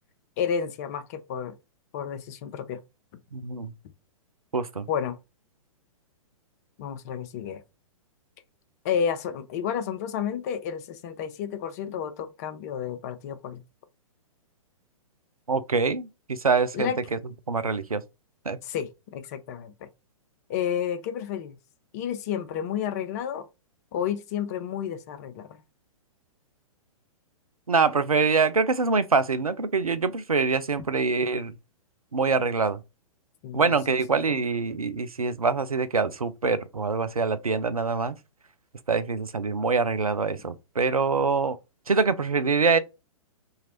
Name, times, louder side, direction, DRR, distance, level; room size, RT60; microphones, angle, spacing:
voice 1, 0.4-1.5 1.9-2.8 4.9-5.2 6.8-7.6 8.8-13.6 16.7-17.0 18.6-19.9 20.5-21.6 21.9-23.5 23.9-25.5 33.4-34.4, left 8 dB, 30° left, 0.4 m, -31 dB
voice 2, 3.3-3.7 4.5-4.9 15.5-17.2 17.5-18.0 18.5-18.6 27.7-31.5 32.1-32.8 33.5-38.1 38.9-41.6 41.9-42.8, right 4 dB, 85° right, 0.4 m, -24 dB
2.9 x 2.4 x 2.8 m
figure-of-eight pair, 115°, 18 cm